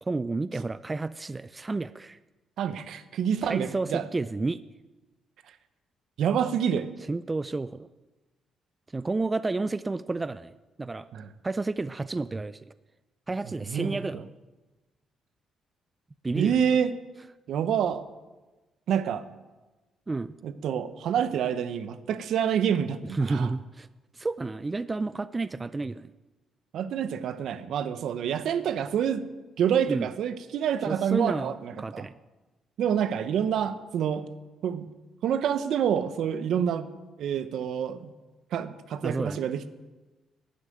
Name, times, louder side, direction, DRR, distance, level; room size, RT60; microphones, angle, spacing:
voice 1, 0.0-2.2 3.4-4.6 7.1-7.9 8.9-10.5 10.8-11.1 11.4-12.7 13.3-14.2 16.2-16.6 20.1-20.3 23.1-23.9 24.1-26.1 29.9-30.1 30.9-32.1 39.0-39.4, right 3 dB, 25° right, 15 dB, 0.3 m, -31 dB
voice 2, 2.6-4.0 6.2-6.9 11.1-11.3 13.7-14.0 16.3-16.9 17.5-18.0 18.9-19.2 20.4-23.5 26.7-29.3 29.6-32.1 32.8-34.3 34.6-34.9 35.2-36.9 37.2-38.1 38.5-39.7, right 8 dB, 75° right, 12 dB, 0.8 m, -27 dB
11.5 x 6.5 x 9.1 m, 1.2 s
cardioid pair, 90°, 0 cm